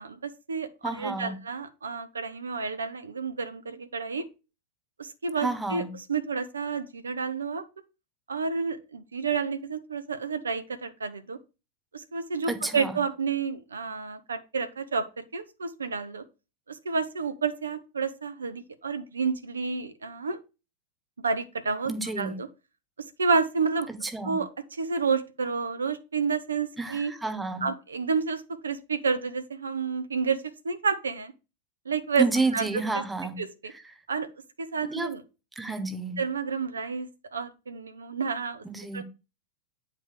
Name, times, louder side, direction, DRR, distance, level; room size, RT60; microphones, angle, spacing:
voice 1, 0.0-4.2 5.0-5.8 6.1-7.6 8.3-11.4 11.9-16.2 16.7-20.4 21.2-22.5 23.0-23.9 24.2-27.1 27.6-31.3 31.9-32.3 32.5-33.0 33.4-33.7 34.1-34.3 34.6-35.2 36.2-38.6 38.9-39.0, right 5 dB, 75° right, 0.7 m, -30 dB
voice 2, 0.8-1.4 5.4-5.9 12.5-13.0 21.9-22.3 23.9-24.4 26.8-27.7 32.2-33.4 34.8-35.1 35.6-36.2 38.6-39.0, right 3 dB, 5° right, 1.3 m, -30 dB
9.2 x 3.5 x 4.9 m
figure-of-eight pair, 90°, 0 cm